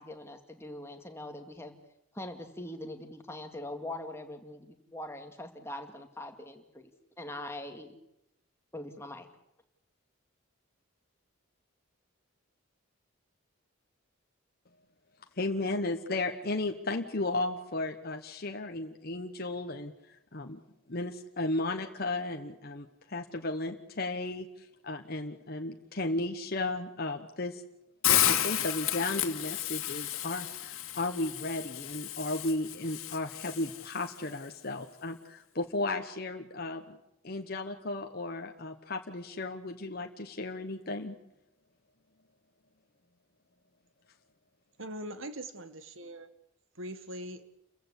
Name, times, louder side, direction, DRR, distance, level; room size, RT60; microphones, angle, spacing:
voice 1, 0.0-1.7 2.1-6.9 7.2-8.0 8.7-9.3, left 1 dB, 10° left, 4 dB, 2.2 m, -42 dB
voice 2, 15.4-20.6 20.9-27.6 28.1-37.0 37.2-41.1, left 2 dB, 45° left, 4 dB, 1.2 m, -34 dB
Hiss, 28.0-34.1, left 12 dB, 85° left, 2.0 m, -32 dB
voice 3, 44.8-46.3 46.7-47.4, right 1 dB, 65° right, 11 dB, 1.8 m, -41 dB
29.0 x 15.5 x 8.3 m, 0.82 s
head